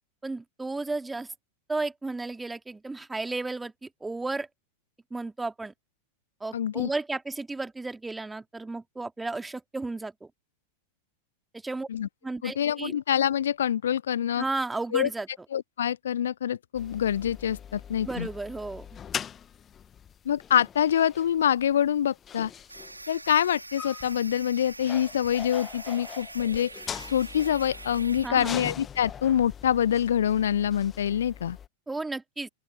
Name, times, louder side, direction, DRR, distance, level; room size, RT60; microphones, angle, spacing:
voice 1, 0.2-1.3 1.7-4.5 5.1-5.7 6.4-10.3 11.5-11.9 12.2-12.9 14.4-15.3 18.0-18.9 28.2-28.6 31.9-32.5, right 3 dB, 10° right, 2.6 m, -33 dB
voice 2, 6.5-6.9 11.9-12.1 12.4-14.4 14.9-15.1 15.5-18.3 20.2-22.5 23.1-26.7 27.1-31.6, left 9 dB, 65° left, 0.8 m, -25 dB
sound 1, 16.7-31.7, left 8 dB, 25° left, 1.3 m, -42 dB
sound 2, 22.7-28.3, right 2 dB, 85° right, 4.9 m, -43 dB
open air
figure-of-eight pair, 90°, 0 cm